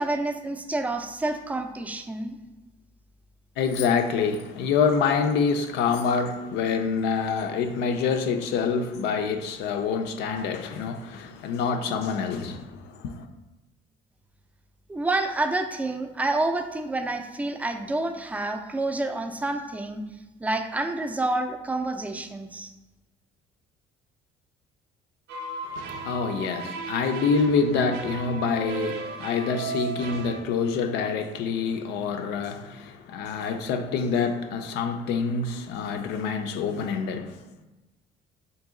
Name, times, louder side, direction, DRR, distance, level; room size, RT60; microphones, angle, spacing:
voice 1, 0.0-2.4 14.9-20.0 20.4-22.7, right 2 dB, 10° right, 0.3 m, -28 dB
voice 2, 3.6-13.3 25.6-37.4, left 5 dB, 85° left, 0.4 m, -26 dB
sound 1, 25.3-30.4, right 4 dB, 85° right, 0.5 m, -35 dB
3.9 x 2.8 x 3.6 m
cardioid pair, 110°, 17 cm